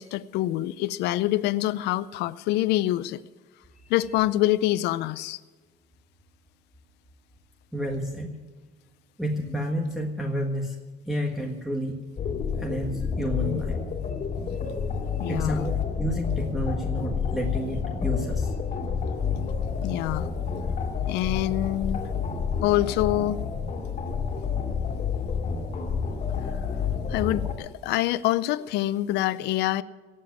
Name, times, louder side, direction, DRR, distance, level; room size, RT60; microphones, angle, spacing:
voice 1, 0.0-3.2 3.9-5.4 13.4-13.7 15.2-15.7 19.8-20.3 21.1-22.0 22.6-23.4 26.7-26.8 27.1-29.8, left 15 dB, 85° left, 17 dB, 0.5 m, -26 dB
voice 2, 7.7-8.4 9.2-10.8 11.0-12.0 12.6-13.9 15.3-18.5, equal, ahead, -2 dB, 1.6 m, -30 dB
sound 1, 12.2-27.5, left 6 dB, 45° left, 2.3 m, -29 dB
17.0 x 7.5 x 9.2 m, 1.3 s
cardioid pair, 110°, 17 cm